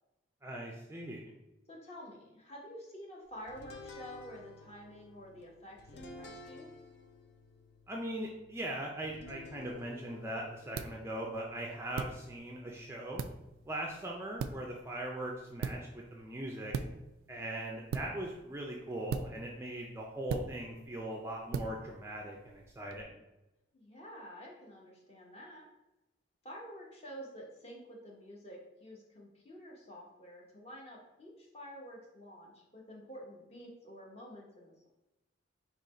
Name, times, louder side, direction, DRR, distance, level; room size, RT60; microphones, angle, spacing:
voice 1, 0.4-1.3 7.9-13.2 13.7-16.7 17.3-23.1, right 1 dB, 15° right, -1 dB, 0.4 m, -40 dB
voice 2, 1.7-6.7 23.7-25.7 26.4-34.9, equal, 30° left, -2 dB, 0.9 m, -49 dB
sound 1, 3.5-14.1, left 3 dB, 55° left, 0.5 m, -54 dB
sound 2, 9.6-23.0, right 5 dB, 85° right, 0.3 m, -42 dB
3.9 x 3.0 x 4.3 m, 0.96 s
head